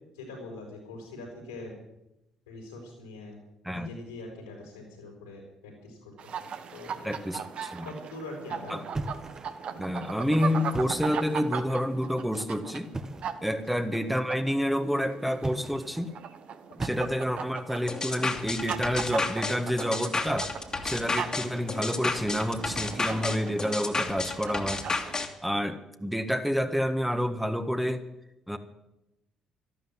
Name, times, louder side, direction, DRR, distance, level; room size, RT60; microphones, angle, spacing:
voice 1, 0.1-1.7 2.5-3.4 3.7-7.3 7.8-8.9 13.5-13.6, left 2 dB, 85° left, 1 dB, 5.4 m, -43 dB
sound 1, 6.2-25.2, right 7 dB, 55° right, 1.2 m, -39 dB
voice 2, 7.0-7.9 8.7-8.8 9.8-12.9 13.4-16.1 16.8-20.5 20.8-24.8 25.4-28.0 28.5-28.6, equal, 5° right, 7 dB, 1.6 m, -29 dB
sound 2, 8.9-9.7 10.6-11.3 12.9-13.4 15.3-16.0 16.8-17.5, right 2 dB, 25° right, 1.4 m, -37 dB
sound 3, 17.9-25.3, left 3 dB, 30° left, 2.2 m, -31 dB
13.0 x 12.0 x 7.5 m, 0.90 s
hypercardioid pair, 50°, 2 cm